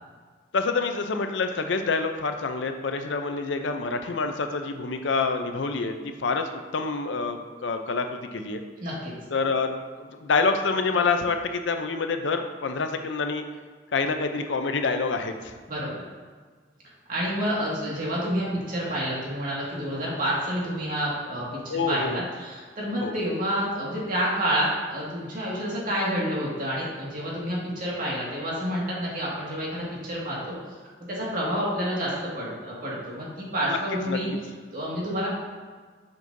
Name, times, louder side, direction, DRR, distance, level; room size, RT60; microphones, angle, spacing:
voice 1, 0.5-8.6 9.3-13.4 13.9-15.5 21.7-22.2 23.0-23.2 33.7-33.8 34.1-34.2, left 4 dB, 80° left, 7 dB, 0.6 m, -27 dB
voice 2, 8.8-9.1 15.7-16.0 17.1-30.6 31.1-34.3 34.7-35.3, equal, 50° right, -5 dB, 2.0 m, -29 dB
7.3 x 6.1 x 2.7 m, 1.5 s
head